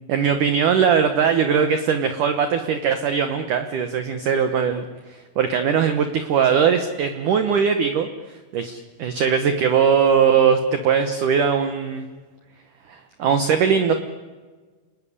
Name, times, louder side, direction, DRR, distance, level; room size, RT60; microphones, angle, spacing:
voice 1, 0.1-4.9 5.4-8.1 8.5-12.1 12.9-13.9, right 7 dB, 70° right, 8 dB, 2.1 m, -20 dB
29.0 x 19.5 x 10.0 m, 1.4 s
omnidirectional pair, 5.1 m